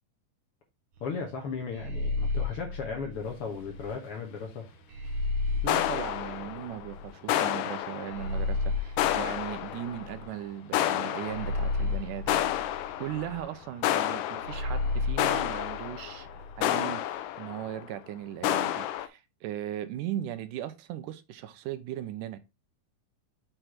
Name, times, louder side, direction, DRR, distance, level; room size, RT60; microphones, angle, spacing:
voice 1, 1.0-4.7, left 5 dB, 55° left, 1.8 m, -36 dB
sound 1, 1.7-3.9 4.9-7.1 8.1-10.4 11.2-13.4 14.4-16.6, left 3 dB, 55° right, 1.8 m, -33 dB
voice 2, 5.6-12.6 13.0-16.3 16.6-22.4, right 12 dB, 80° right, 2.2 m, -38 dB
sound 2, 5.7-6.9 7.3-8.6 9.0-10.2 10.7-11.9 12.3-13.4 13.8-17.8 18.4-19.1, left 12 dB, 85° left, 2.2 m, -30 dB
6.5 x 4.5 x 4.3 m
omnidirectional pair, 3.7 m